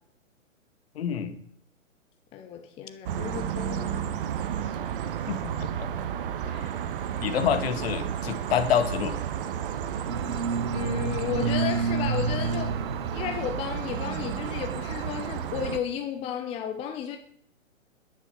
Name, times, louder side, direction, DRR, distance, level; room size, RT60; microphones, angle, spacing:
voice 1, 1.0-1.4 5.3-5.9 6.5-6.7 7.2-9.2, left 8 dB, 50° left, 1.8 m, -27 dB
voice 2, 2.3-4.2 10.7-12.8 13.1-17.2, left 9 dB, 15° left, 0.8 m, -33 dB
sound 1, 3.1-15.8, right 9 dB, 40° right, 1.3 m, -32 dB
sound 2, 10.1-15.2, right 4 dB, 80° right, 1.0 m, -31 dB
11.0 x 10.5 x 6.9 m
figure-of-eight pair, 125°, 40 cm